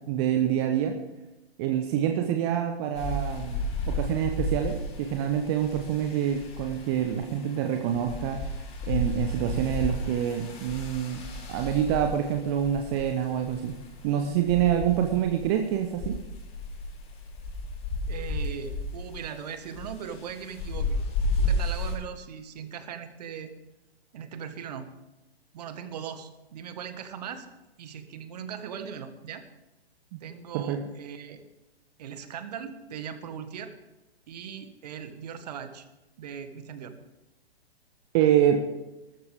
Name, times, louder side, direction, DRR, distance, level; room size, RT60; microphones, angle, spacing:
voice 1, 0.1-1.0 1.6-8.5 8.9-11.2 11.5-13.7 14.0-16.2 30.1-30.2 30.5-30.8 38.1-38.7, right 10 dB, 25° right, 5 dB, 1.0 m, -26 dB
sound 1, 2.9-22.0, left 2 dB, 20° left, 3.0 m, -33 dB
voice 2, 18.1-21.0 21.4-23.5 24.1-24.9 25.5-27.5 27.8-29.4 30.2-31.4 32.0-33.7 34.3-35.9 36.2-36.9, right 8 dB, 40° right, 9 dB, 1.7 m, -39 dB
19.5 x 13.5 x 3.6 m, 1.0 s
figure-of-eight pair, 120°, 31 cm